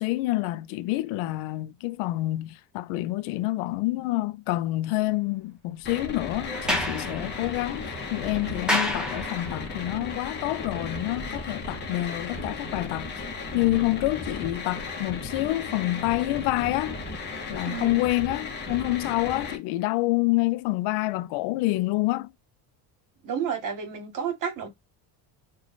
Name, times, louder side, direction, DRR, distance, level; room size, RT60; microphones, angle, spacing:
voice 1, 0.0-13.2 13.5-17.0 17.5-22.3, left 19 dB, 75° left, 0.6 m, -27 dB
sound 1, 5.8-19.6, left 3 dB, 20° left, 0.9 m, -35 dB
Sliding door, 6.5-9.8, left 1 dB, ahead, 0.5 m, -31 dB
voice 2, 17.7-18.0 23.2-24.7, right 7 dB, 40° right, 1.4 m, -31 dB
3.1 x 2.4 x 4.0 m
cardioid pair, 155°, 50 cm